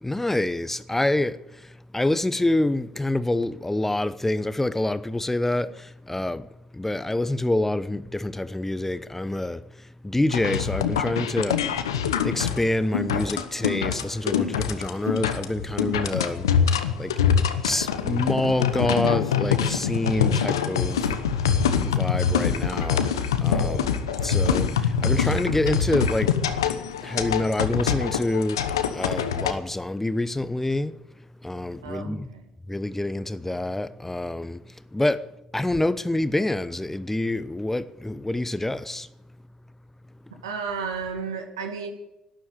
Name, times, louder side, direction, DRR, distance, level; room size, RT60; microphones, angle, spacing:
voice 1, 0.0-6.5 6.7-9.6 10.0-11.6 12.2-16.5 17.0-17.1 17.6-21.1 21.4-23.9 24.2-26.3 27.0-28.6 28.9-31.0 31.4-32.3 32.7-34.6 34.9-35.2 35.5-39.1, left 1 dB, 10° left, 0.9 m, -27 dB
sound 1, 10.3-29.5, left 7 dB, 90° left, 0.9 m, -24 dB
voice 2, 31.8-32.5 40.4-41.9, right 5 dB, 90° right, 2.1 m, -33 dB
12.5 x 10.5 x 8.4 m
hypercardioid pair, 55°, 2 cm